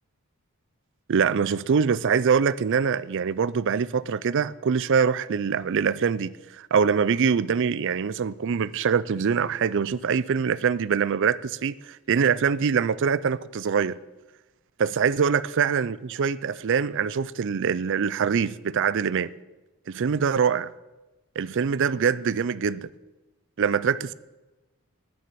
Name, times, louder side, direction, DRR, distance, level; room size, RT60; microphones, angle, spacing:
voice 1, 1.1-14.0 14.8-19.3 19.9-20.7 21.4-22.9 23.6-24.1, right 6 dB, 55° right, 0.4 m, -24 dB
9.5 x 9.4 x 7.6 m
head